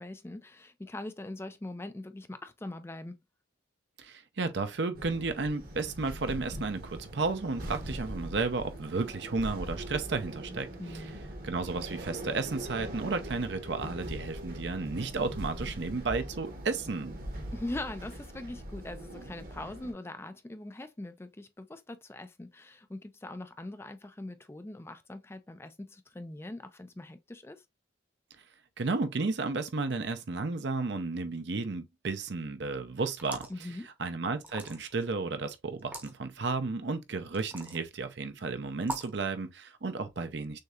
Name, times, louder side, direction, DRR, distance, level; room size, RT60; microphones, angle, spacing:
voice 1, 0.0-3.1 10.8-11.2 17.5-27.6 33.5-33.9, left 2 dB, 15° left, 0.4 m, -42 dB
voice 2, 4.0-11.1 11.4-17.1 28.8-33.7 34.0-40.6, right 3 dB, 65° right, 0.7 m, -33 dB
sound 1, 4.9-19.9, right 1 dB, 50° right, 1.1 m, -41 dB
sound 2, 33.2-33.6 34.4-35.0 35.8-36.1 37.3-37.8 38.8-39.2, right 1 dB, 10° right, 0.8 m, -40 dB
6.4 x 2.8 x 2.4 m
head